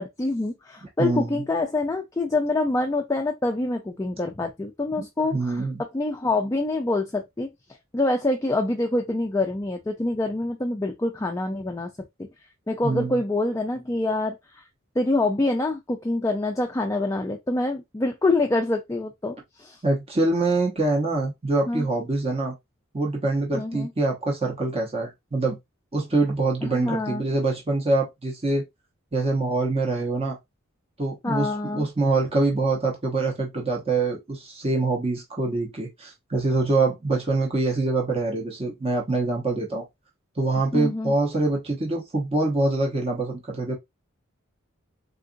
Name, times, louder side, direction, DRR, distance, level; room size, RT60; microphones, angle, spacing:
voice 1, 0.0-5.6 5.9-7.5 7.9-11.9 12.7-14.6 15.0-19.8 21.7-21.9 23.5-23.9 26.6-27.2 31.2-31.9 40.7-41.1, left 2 dB, 15° left, 0.3 m, -26 dB
voice 2, 1.0-1.4 5.0-5.1 5.3-5.8 12.8-13.2 19.8-22.5 22.9-25.6 25.9-28.6 29.1-30.4 31.0-39.9 40.4-43.7, right 2 dB, 30° right, 0.8 m, -25 dB
3.7 x 2.4 x 2.5 m
head